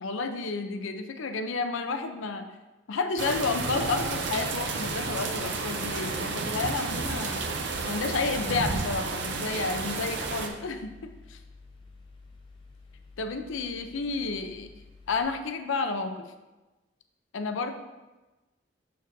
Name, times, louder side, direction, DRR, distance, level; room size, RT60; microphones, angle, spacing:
voice 1, 0.0-2.5 2.9-7.5 7.8-11.4 13.2-14.7 15.1-16.3 17.3-17.7, left 3 dB, 90° left, 8 dB, 0.6 m, -31 dB
sound 1, 3.2-10.5, right 4 dB, 65° right, 0.6 m, -31 dB
Mechanical fan, 8.2-15.2, left 3 dB, 25° left, 0.7 m, -51 dB
6.6 x 6.5 x 2.6 m, 1.1 s
head